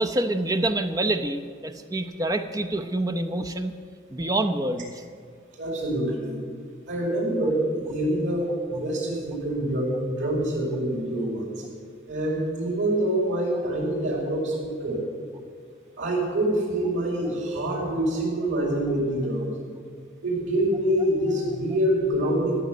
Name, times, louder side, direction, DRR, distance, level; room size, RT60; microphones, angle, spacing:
voice 1, 0.0-3.7 4.1-5.0, right 1 dB, 20° right, 7 dB, 0.6 m, -26 dB
voice 2, 5.6-6.3 6.9-11.5 12.1-15.0 16.0-19.5 20.2-22.6, right 1 dB, 85° right, -8 dB, 4.7 m, -26 dB
14.5 x 7.1 x 9.2 m, 2.1 s
head